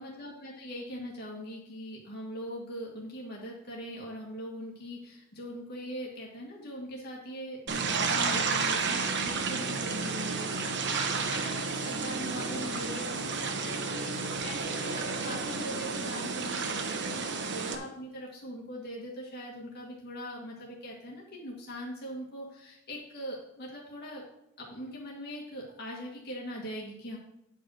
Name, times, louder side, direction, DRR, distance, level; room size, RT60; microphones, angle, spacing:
voice 1, 0.0-24.2 24.6-27.2, equal, 50° left, -3 dB, 1.9 m, -41 dB
sound 1, 7.7-17.8, right 4 dB, 60° right, 1.0 m, -31 dB
9.6 x 5.2 x 6.3 m, 0.81 s
head